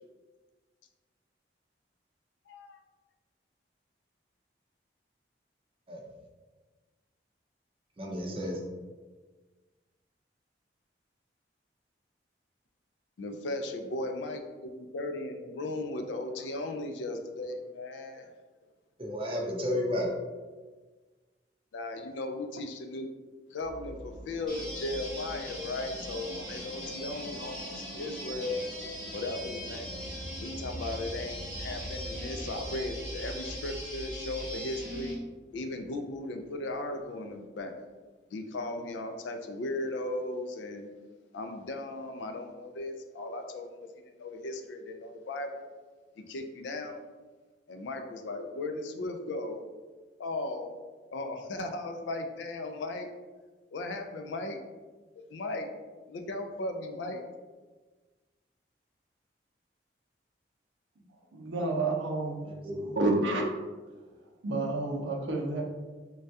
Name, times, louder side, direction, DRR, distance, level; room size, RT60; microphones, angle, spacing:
voice 1, 2.5-2.8 13.2-18.3 21.7-23.1 23.5-28.7 29.1-29.9 30.4-35.2 35.5-37.7 38.3-40.9 41.3-45.7 46.2-47.0 47.7-49.6 50.2-50.8 51.1-53.1 53.7-54.6 55.3-55.7 56.1-57.2, left 2 dB, 75° left, 5 dB, 0.4 m, -36 dB
voice 2, 8.0-8.6 19.0-20.1 62.4-62.8, left 1 dB, 30° right, -1 dB, 0.5 m, -32 dB
sound 1, 23.6-36.0 36.3-36.4, equal, 60° left, 0.9 m, -44 dB
sound 2, 24.5-35.1, equal, ahead, 1.0 m, -41 dB
voice 3, 61.3-62.4 62.7-63.5 64.4-65.6, right 2 dB, 85° right, 0 dB, 0.6 m, -29 dB
3.2 x 2.2 x 2.6 m, 1.3 s
head